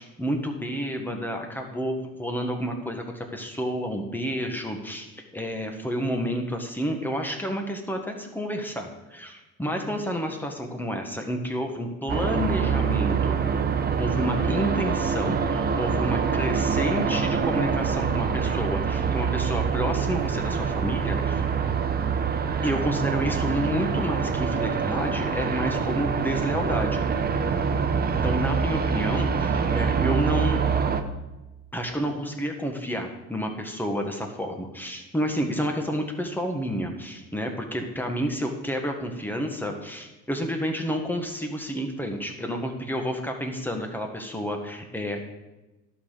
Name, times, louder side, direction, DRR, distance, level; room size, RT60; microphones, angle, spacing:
voice 1, 0.0-13.4 14.0-21.4 22.6-27.0 28.1-30.6 31.7-45.2, equal, 5° left, 3 dB, 1.6 m, -30 dB
sound 1, 12.1-31.0, right 6 dB, 30° right, 0.9 m, -25 dB
12.0 x 5.8 x 5.0 m, 1.0 s
supercardioid pair, 90°, 29 cm